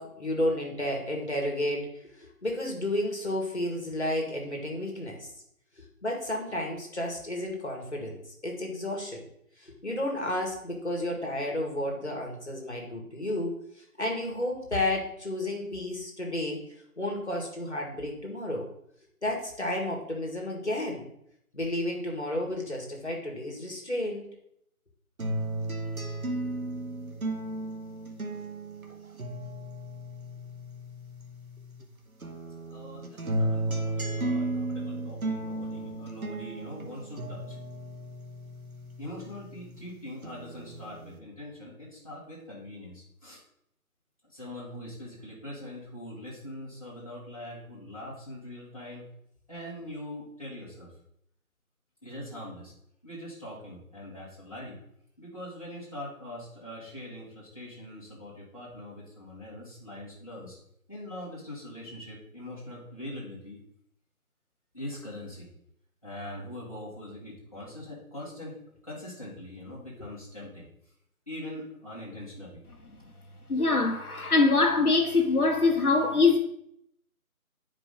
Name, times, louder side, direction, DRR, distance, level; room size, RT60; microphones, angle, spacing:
voice 1, 0.0-1.8 2.2-5.3 5.8-9.2 9.6-13.6 14.0-16.6 17.0-18.6 19.2-21.1 21.5-24.2, left 1 dB, 50° left, 1.8 m, -32 dB
sound 1, 25.2-31.8 32.2-39.8 40.2-41.2, right 1 dB, 70° right, 1.1 m, -35 dB
voice 2, 32.7-37.6 39.0-43.4 44.3-49.1 49.5-50.9 52.0-52.7 53.0-54.8 55.2-60.6 60.9-63.6 64.7-65.5 66.0-68.6 68.8-70.7 71.3-72.6, left 1 dB, 25° left, 1.8 m, -42 dB
voice 3, 73.5-76.4, left 3 dB, 80° left, 1.2 m, -22 dB
8.3 x 4.9 x 3.8 m
figure-of-eight pair, 180°, 44 cm